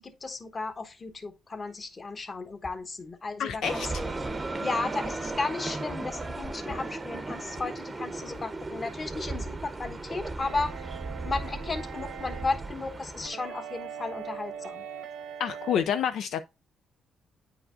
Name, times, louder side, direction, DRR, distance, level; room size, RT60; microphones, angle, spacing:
voice 1, 0.0-4.1 4.6-10.9 11.2-14.8, left 3 dB, 35° left, 1.1 m, -34 dB
sound 1, 2.6-2.8 3.5-3.6 4.3-4.5 5.1-5.2 5.9-6.1 6.7-6.9 7.6-7.7 8.3-8.5 9.1-9.3, left 2 dB, 55° left, 1.6 m, -46 dB
voice 2, 3.4-3.9 15.4-16.4, left 8 dB, 75° left, 0.4 m, -28 dB
sound 2, 3.6-13.3, right 2 dB, 25° right, 0.7 m, -36 dB
sound 3, 10.4-15.8, right 7 dB, 75° right, 1.0 m, -41 dB
8.7 x 4.8 x 2.5 m
cardioid pair, 90°, 0 cm